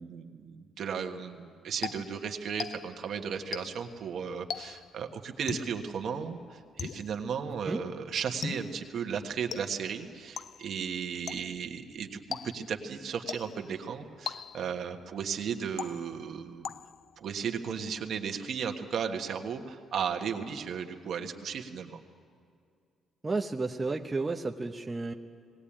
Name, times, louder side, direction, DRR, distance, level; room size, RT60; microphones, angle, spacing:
voice 1, 0.0-16.7 17.2-22.0, right 7 dB, 65° right, 4 dB, 1.5 m, -35 dB
sound 1, 1.8-3.1 3.5-4.0 4.5-5.0 5.5-5.9 6.8-7.3 8.4-8.9 9.5-10.0 10.4-10.8 11.3-11.7 12.3-12.8 13.3-13.7 14.3-14.8 15.8-16.3 16.6-17.1, left 7 dB, 55° left, 0.4 m, -40 dB
voice 2, 23.2-25.1, right 3 dB, 25° right, 3 dB, 0.9 m, -32 dB
19.5 x 18.0 x 8.8 m, 2.3 s
cardioid pair, 90°, 0 cm